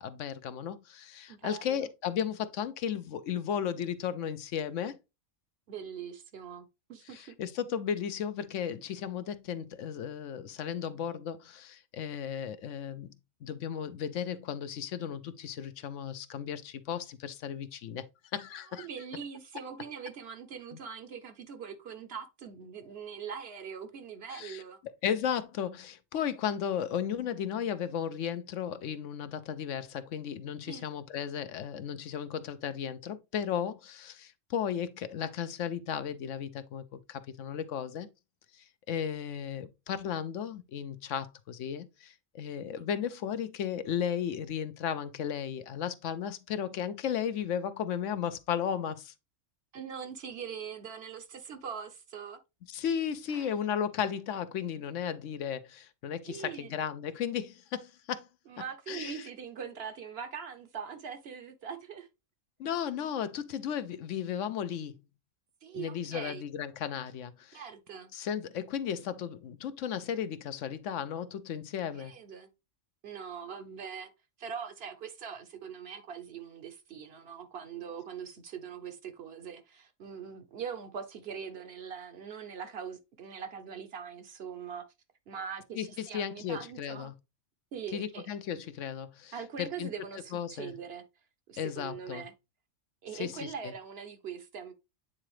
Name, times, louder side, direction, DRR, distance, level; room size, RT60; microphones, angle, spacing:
voice 1, 0.0-5.0 7.1-13.1 13.4-18.0 18.3-18.9 24.3-38.1 38.5-49.1 52.7-58.3 58.9-59.3 62.6-65.0 65.7-67.6 68.1-72.1 85.7-87.1 87.9-89.9 90.3-90.7 91.6-92.2 93.1-93.7, left 8 dB, 75° left, 0.9 m, -35 dB
voice 2, 1.3-1.9 5.7-7.4 18.7-24.8 30.7-30.8 49.7-52.4 53.3-53.5 56.3-56.7 58.5-62.1 65.6-66.4 67.5-68.1 72.0-72.5 73.0-74.1 74.4-84.9 85.3-87.1 87.7-88.3 89.3-91.0 91.5-92.3 93.0-94.7, right 7 dB, 55° right, 0.9 m, -42 dB
8.8 x 3.7 x 3.1 m
omnidirectional pair, 1.3 m